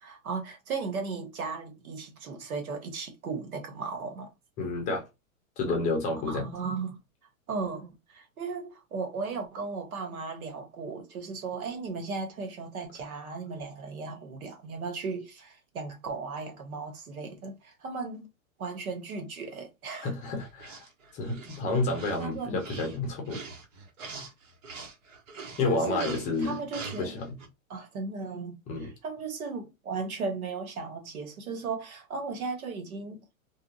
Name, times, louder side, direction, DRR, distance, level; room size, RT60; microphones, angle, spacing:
voice 1, 0.0-4.3 6.2-7.0 7.5-18.3 18.6-20.1 22.2-22.6 25.6-27.2 27.7-33.2, right 4 dB, 85° right, 1.3 m, -36 dB
voice 2, 4.6-5.0 5.6-6.4 20.0-20.8 21.1-23.4 25.6-26.6 27.0-27.3 28.7-28.9, left 3 dB, 20° left, 0.6 m, -30 dB
sound 1, 20.2-27.5, right 4 dB, 65° right, 1.2 m, -43 dB
2.8 x 2.4 x 2.7 m
hypercardioid pair, 145°, 41 cm